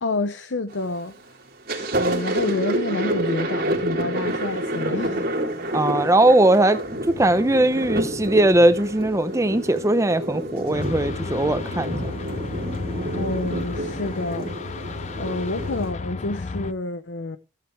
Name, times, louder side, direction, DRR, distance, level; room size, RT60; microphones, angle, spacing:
voice 1, 0.0-1.1 2.0-5.4 13.1-14.5 15.2-17.4, left 2 dB, 65° left, 0.8 m, -28 dB
Thunder, 0.7-1.1 1.5-15.9, right 1 dB, 50° right, 3.0 m, -28 dB
voice 2, 5.7-6.8 7.1-12.0, right 1 dB, 15° right, 0.7 m, -19 dB
sound 1, 10.7-16.7, left 3 dB, 35° left, 0.5 m, -32 dB
14.5 x 9.4 x 3.4 m
head